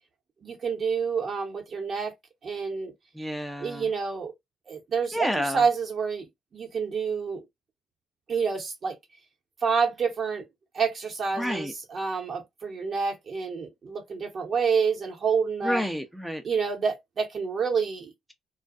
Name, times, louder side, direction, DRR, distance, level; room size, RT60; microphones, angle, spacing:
voice 1, 0.4-2.1 2.4-2.9 3.6-4.3 4.7-7.4 8.3-9.0 9.6-10.4 10.7-15.8 16.4-18.1, right 5 dB, 55° right, 1.1 m, -28 dB
voice 2, 3.1-3.9 5.1-5.6 11.3-11.7 15.6-16.4, equal, ahead, 0.6 m, -29 dB
2.4 x 2.2 x 2.5 m
hypercardioid pair, 45°, 0 cm